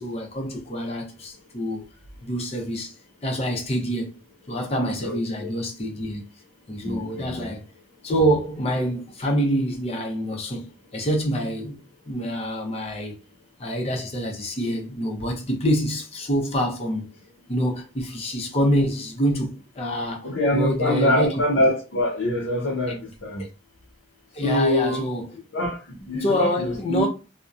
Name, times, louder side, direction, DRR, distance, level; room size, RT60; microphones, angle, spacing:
voice 1, 0.0-1.9 2.2-2.9 3.2-4.2 4.5-6.2 6.7-7.6 8.0-11.8 12.1-13.2 13.6-17.1 17.5-21.7 24.3-25.3 26.1-27.1, equal, 35° left, 0.6 m, -26 dB
voice 2, 5.0-5.5 6.8-7.5 20.2-23.5 24.4-25.0 25.5-27.1, left 1 dB, 75° left, 0.6 m, -24 dB
2.6 x 2.1 x 2.3 m
head